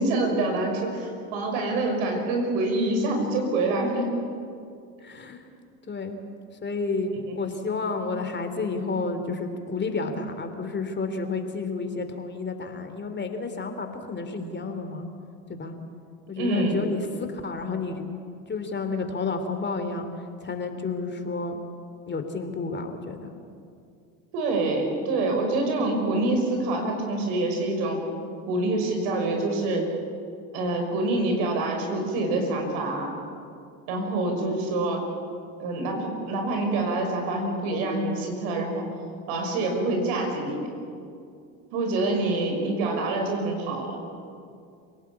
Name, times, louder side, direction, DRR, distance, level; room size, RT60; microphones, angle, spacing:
voice 1, 0.0-4.1 7.3-7.4 16.4-16.8 24.3-28.0 28.5-30.0 30.5-33.2 33.9-35.1 35.6-38.9 39.3-40.7 41.7-44.0, right 2 dB, 70° right, 3 dB, 5.9 m, -26 dB
voice 2, 5.0-5.4 5.9-6.2 6.6-15.1 15.6-15.7 16.3-18.1 18.5-20.1 20.4-21.6 22.1-23.3, left 3 dB, 25° left, 7 dB, 3.1 m, -31 dB
27.5 x 18.0 x 8.5 m, 2.4 s
hypercardioid pair, 75°, 40 cm